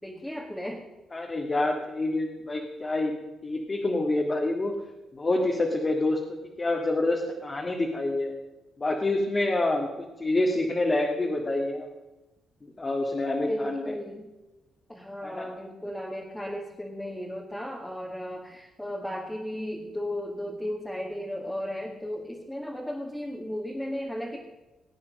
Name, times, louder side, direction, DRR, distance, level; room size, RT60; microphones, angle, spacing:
voice 1, 0.0-0.9 13.5-14.3 14.9-24.4, equal, 5° left, -1 dB, 2.0 m, -35 dB
voice 2, 1.1-3.1 3.4-4.7 5.1-6.2 6.6-8.3 8.8-9.9 10.2-11.9 12.8-13.8 15.2-15.5, left 2 dB, 30° left, 0 dB, 1.9 m, -27 dB
19.0 x 8.4 x 6.4 m, 1.1 s
cardioid pair, 90°, 0 cm